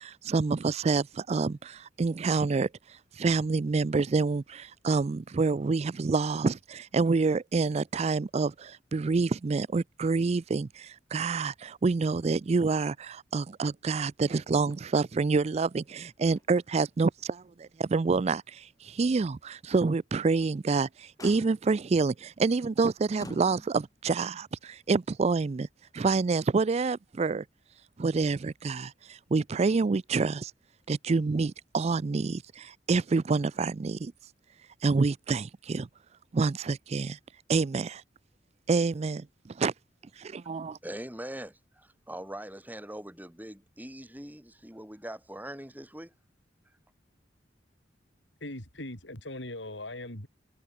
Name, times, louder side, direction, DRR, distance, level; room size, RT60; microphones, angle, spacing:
voice 1, 0.0-2.7 3.2-25.7 25.9-27.4 28.0-30.5 30.9-34.1 34.8-35.9 36.3-37.2 37.5-38.0 38.7-39.7 40.5-40.7, right 4 dB, 35° right, 0.4 m, -27 dB
Motor vehicle (road), 14.2-14.9 15.2-15.3 15.8-16.7 17.2-17.3 17.8-17.9 20.2-20.6 21.2-21.9 22.6-22.8 23.2-24.0 25.1-25.2, left 1 dB, 20° left, 5.7 m, -49 dB
voice 2, 40.8-46.1, right 1 dB, 10° right, 7.6 m, -42 dB
voice 3, 48.4-50.3, left 1 dB, 80° left, 6.8 m, -40 dB
head